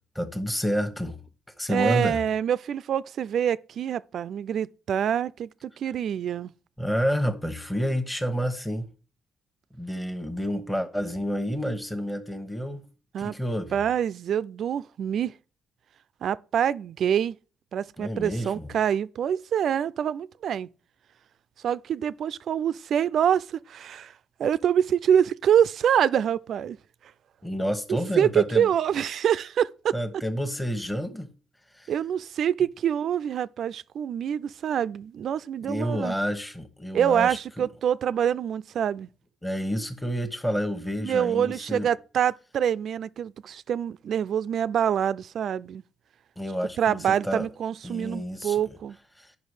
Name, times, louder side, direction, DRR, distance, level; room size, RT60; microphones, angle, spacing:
voice 1, 0.1-1.2 1.6-2.2 6.8-8.8 9.8-12.9 13.2-13.8 18.0-18.7 27.4-28.7 29.9-31.3 31.7-31.9 35.6-37.7 39.4-41.9 46.4-47.5 47.8-48.7 49.2-49.4, equal, 10° left, 1.1 m, -29 dB
voice 2, 1.7-6.5 13.1-13.4 13.7-15.3 16.2-17.4 17.7-20.7 21.6-24.1 24.4-26.8 27.9-29.9 31.9-36.1 36.9-39.1 41.0-45.8 46.8-49.0, right 9 dB, 65° right, 0.3 m, -26 dB
9.3 x 5.8 x 4.9 m
cardioid pair, 90°, 0 cm